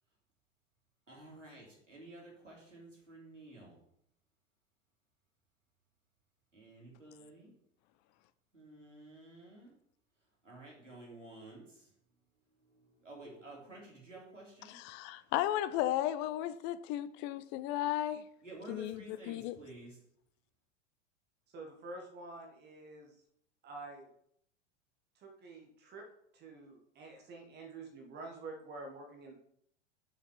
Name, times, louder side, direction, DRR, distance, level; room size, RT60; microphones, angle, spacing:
voice 1, 1.1-3.8 6.5-7.5 8.5-9.7 10.4-11.9 12.7-14.8 18.4-20.0, right 2 dB, 85° right, 3.2 m, -52 dB
voice 2, 14.7-18.3 18.7-19.6, left 13 dB, 30° left, 0.5 m, -35 dB
voice 3, 21.5-23.1 23.6-24.1 25.2-26.0 26.3-29.3, right 3 dB, 30° right, 1.4 m, -48 dB
6.5 x 5.8 x 5.7 m
figure-of-eight pair, 90°, 37 cm